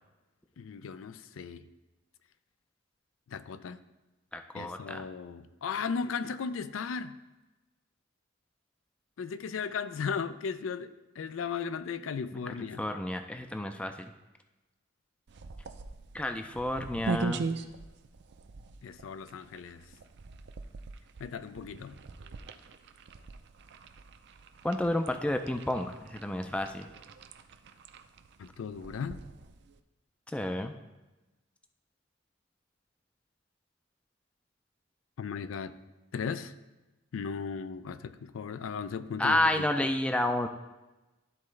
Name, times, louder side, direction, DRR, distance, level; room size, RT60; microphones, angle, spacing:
voice 1, 0.6-1.6 3.3-3.8 4.5-7.2 9.2-12.8 18.8-19.8 21.2-22.0 28.4-29.2 35.2-35.7 36.1-36.5 37.1-39.7, left 6 dB, 85° left, 13 dB, 0.4 m, -36 dB
voice 2, 4.3-5.1 12.3-14.1 16.1-17.5 24.6-26.9 30.3-30.8 39.2-40.5, left 1 dB, 5° left, 7 dB, 0.3 m, -30 dB
sound 1, 15.3-29.8, right 4 dB, 60° right, 0.4 m, -41 dB
12.0 x 4.1 x 3.2 m, 1.1 s
head